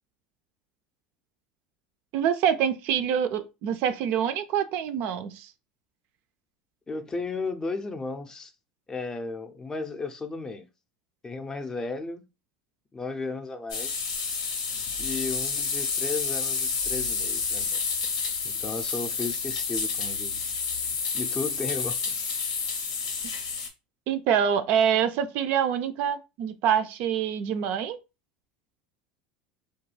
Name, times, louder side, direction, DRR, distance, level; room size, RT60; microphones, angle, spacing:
voice 1, 2.1-5.5 24.1-28.0, right 8 dB, 60° right, 0.3 m, -25 dB
voice 2, 6.9-8.5 8.9-10.7 11.2-12.2 12.9-14.0 15.0-17.8 18.4-20.5 21.1-22.2, left 3 dB, 20° left, 0.5 m, -34 dB
sound 1, 13.7-23.7, left 5 dB, 85° left, 0.7 m, -29 dB
2.3 x 2.2 x 3.1 m
supercardioid pair, 100°, 3 cm